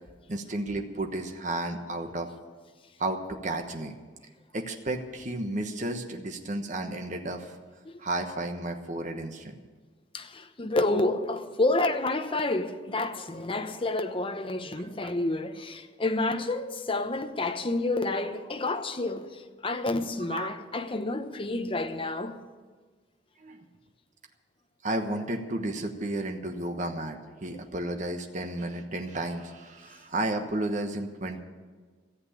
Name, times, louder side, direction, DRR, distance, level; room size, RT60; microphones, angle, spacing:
voice 1, 0.3-2.3 3.0-3.9 4.5-7.6 8.0-9.6 14.8-15.1 20.3-20.6 23.4-23.6 24.8-31.4, right 2 dB, 40° right, 1.2 m, -33 dB
voice 2, 10.1-22.4, left 2 dB, 30° left, 0.9 m, -29 dB
14.5 x 8.1 x 9.8 m
head